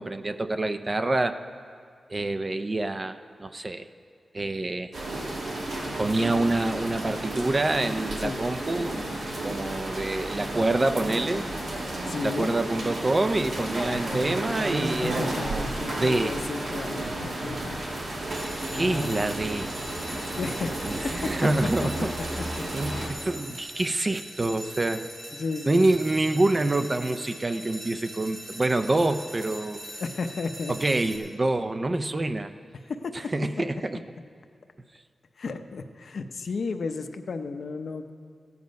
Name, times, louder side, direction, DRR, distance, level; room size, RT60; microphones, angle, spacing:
voice 1, 0.0-1.4 2.1-3.9 4.3-4.9 6.0-9.2 9.4-11.5 12.2-15.6 16.0-16.4 18.7-19.7 20.9-22.1 22.7-25.1 25.6-29.8 30.7-32.5 33.1-34.0, right 2 dB, 25° right, 10 dB, 0.4 m, -26 dB
sound 1, 4.9-23.1, right 1 dB, 75° right, 2.1 m, -32 dB
voice 2, 12.1-12.5 13.9-14.3 15.0-17.8 18.2-19.2 20.3-21.3 21.8-21.9 22.6-22.7 25.3-25.8 30.0-31.0 32.9-33.1 35.4-38.1, left 4 dB, 65° left, 7 dB, 0.7 m, -34 dB
sound 2, 18.3-31.2, right 1 dB, 50° right, 3.3 m, -42 dB
15.0 x 9.5 x 5.2 m, 2.1 s
wide cardioid pair, 145°, 0 cm